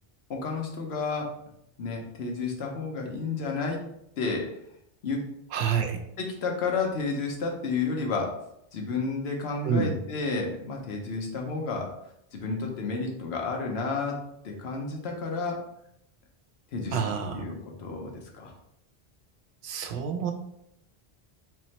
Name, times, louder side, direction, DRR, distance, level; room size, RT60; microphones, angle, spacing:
voice 1, 0.3-1.3 1.8-3.8 4.2-4.5 5.0-5.2 6.2-8.3 8.7-11.9 12.3-14.2 14.4-15.6 16.7-17.0 17.3-18.5, left 4 dB, 80° left, 1 dB, 1.0 m, -31 dB
voice 2, 5.5-6.0 9.6-9.9 16.9-17.4 19.6-20.3, right 6 dB, 80° right, 5 dB, 0.8 m, -28 dB
3.5 x 3.1 x 2.8 m, 0.77 s
omnidirectional pair, 1.1 m